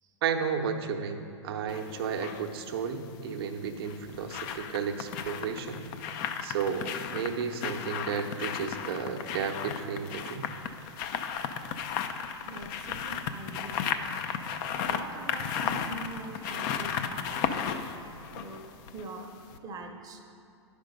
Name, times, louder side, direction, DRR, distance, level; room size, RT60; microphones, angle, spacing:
voice 1, 0.2-5.9 6.4-10.5, right 6 dB, 55° right, 5 dB, 0.8 m, -33 dB
sound 1, 1.7-2.4 3.7-19.2 19.5-19.6, left 8 dB, 45° left, 0.5 m, -34 dB
voice 2, 12.2-13.9 14.7-17.8 18.3-18.7 18.9-19.3 19.6-20.2, right 2 dB, 25° right, 4 dB, 0.8 m, -43 dB
10.5 x 5.1 x 5.2 m, 2.6 s
figure-of-eight pair, 105°, 15 cm